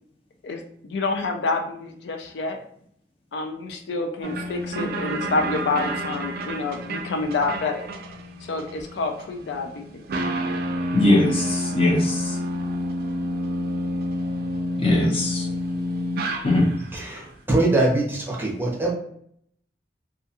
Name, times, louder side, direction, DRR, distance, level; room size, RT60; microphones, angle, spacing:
voice 1, 0.4-2.6 3.3-7.9 8.4-10.0, left 3 dB, 80° left, 4 dB, 0.4 m, -28 dB
sound 1, 4.2-17.0, equal, 60° right, 0.4 m, -29 dB
voice 2, 10.9-12.3 14.8-15.5 16.4-16.7, left 1 dB, 35° left, -2 dB, 0.7 m, -20 dB
voice 3, 16.9-18.9, right 2 dB, 10° right, -3 dB, 0.7 m, -23 dB
2.4 x 2.3 x 2.7 m, 0.65 s
head